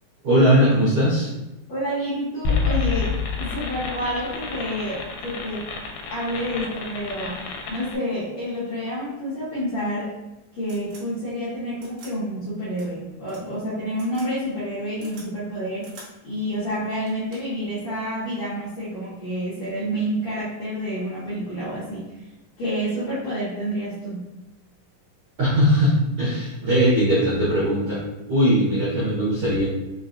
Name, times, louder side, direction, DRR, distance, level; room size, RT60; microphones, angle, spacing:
voice 1, 0.2-1.3 25.4-28.0 28.3-29.7, equal, 90° right, -9 dB, 1.1 m, -19 dB
voice 2, 1.7-5.7 6.1-10.1 10.5-22.2 22.6-24.3, equal, 65° left, -11 dB, 1.9 m, -29 dB
sound 1, 2.5-8.0, left 5 dB, 85° left, 2.4 m, -28 dB
sound 2, 10.6-11.0 11.8-12.1 12.8-12.9 13.3-13.4 14.0-14.3 14.6-15.3 15.8-16.1 16.6-16.7 17.1-17.6 18.8-19.1, right 3 dB, 70° right, 2.4 m, -46 dB
5.6 x 2.3 x 2.6 m, 0.99 s
omnidirectional pair, 4.2 m